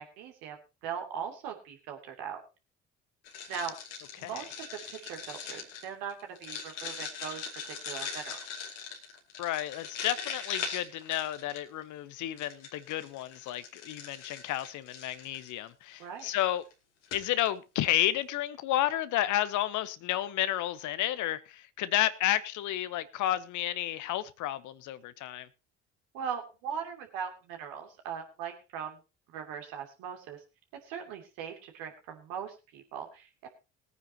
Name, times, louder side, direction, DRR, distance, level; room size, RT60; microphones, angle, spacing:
voice 1, 0.0-2.4 3.5-3.7 4.2-8.6 16.0-16.3 26.1-29.0 29.3-30.4 30.8-33.5, right 7 dB, 70° right, 2.8 m, -40 dB
sound 1, 3.2-11.8 12.4-15.5 16.2-16.4 16.7-16.8 17.0-17.5, left 6 dB, 80° left, 2.5 m, -41 dB
voice 2, 9.4-16.6 17.1-25.5, left 13 dB, 55° left, 0.9 m, -31 dB
21.0 x 9.5 x 2.9 m
figure-of-eight pair, 50°, 35 cm